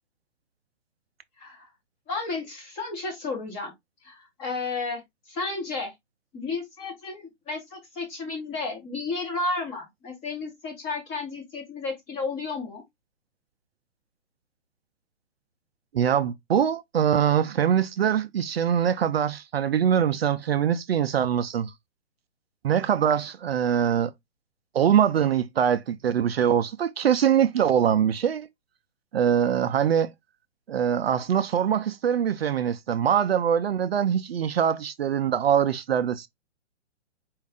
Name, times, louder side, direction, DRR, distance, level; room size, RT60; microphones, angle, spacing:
voice 1, 1.4-1.7 2.1-3.7 4.0-5.0 5.3-5.9 6.3-12.8, left 3 dB, 15° left, 1.0 m, -32 dB
voice 2, 15.9-21.7 22.6-24.1 24.7-28.5 29.1-30.1 30.7-36.3, right 9 dB, 55° right, 0.5 m, -23 dB
4.6 x 2.4 x 3.5 m
hypercardioid pair, 155°, 37 cm